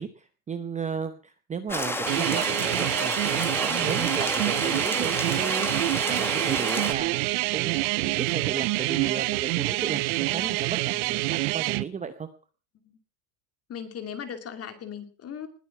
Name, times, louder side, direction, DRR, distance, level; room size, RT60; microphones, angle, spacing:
voice 1, 0.0-12.3, right 6 dB, 15° right, 9 dB, 0.8 m, -35 dB
sound 1, 1.7-6.9, left 1 dB, 5° left, 1.8 m, -30 dB
sound 2, 2.1-11.8, right 23 dB, 60° right, 0.8 m, -26 dB
voice 2, 13.7-15.5, left 8 dB, 30° left, 8 dB, 2.6 m, -38 dB
20.0 x 8.6 x 6.0 m, 0.39 s
supercardioid pair, 135°, 48 cm